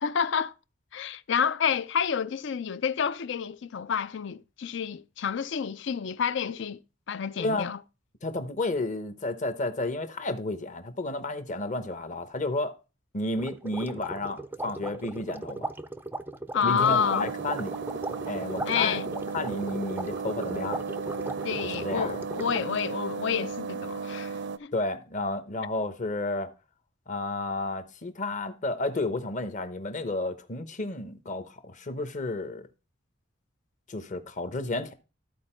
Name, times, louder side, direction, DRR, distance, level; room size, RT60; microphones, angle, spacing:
voice 1, 0.0-0.5 0.9-6.8 7.1-7.8 16.5-17.3 18.7-19.1 21.4-24.7, left 7 dB, 65° left, 0.4 m, -29 dB
voice 2, 8.2-12.7 13.1-15.6 16.6-17.8 18.3-20.8 21.6-22.2 24.7-26.5 27.1-32.7 33.9-34.9, left 2 dB, 40° left, 0.9 m, -32 dB
sound 1, 13.4-22.8, right 1 dB, 10° right, 0.4 m, -38 dB
sound 2, 16.7-24.6, right 5 dB, 65° right, 0.5 m, -35 dB
13.0 x 4.4 x 4.4 m
head